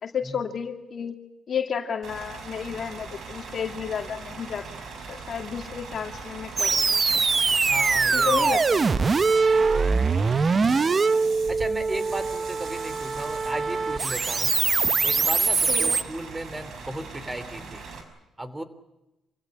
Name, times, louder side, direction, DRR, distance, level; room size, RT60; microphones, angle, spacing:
voice 1, 0.0-1.1 1.5-7.0 8.1-8.9 10.7-11.1 15.7-16.0, left 7 dB, 50° left, 5 dB, 2.5 m, -32 dB
Bus / Idling, 2.0-18.0, right 4 dB, 65° right, 5.5 m, -40 dB
sound 1, 6.6-16.0, right 4 dB, 35° right, 0.9 m, -23 dB
voice 2, 7.7-8.3 11.5-14.6 15.0-17.8 18.4-18.6, right 1 dB, 15° right, 13 dB, 3.1 m, -35 dB
26.5 x 16.5 x 9.8 m, 0.97 s
cardioid pair, 90°, 0 cm